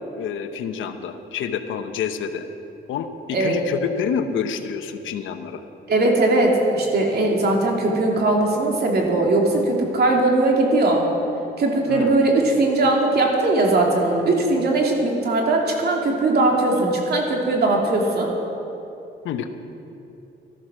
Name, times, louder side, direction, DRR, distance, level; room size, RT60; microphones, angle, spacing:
voice 1, 0.1-2.5 2.9-5.7 11.9-12.2 19.2-19.5, left 7 dB, 80° left, 7 dB, 1.0 m, -28 dB
voice 2, 5.9-11.0 11.6-18.3, right 2 dB, 55° right, 0 dB, 2.9 m, -19 dB
13.5 x 13.5 x 6.2 m, 2.8 s
cardioid pair, 90°, 20 cm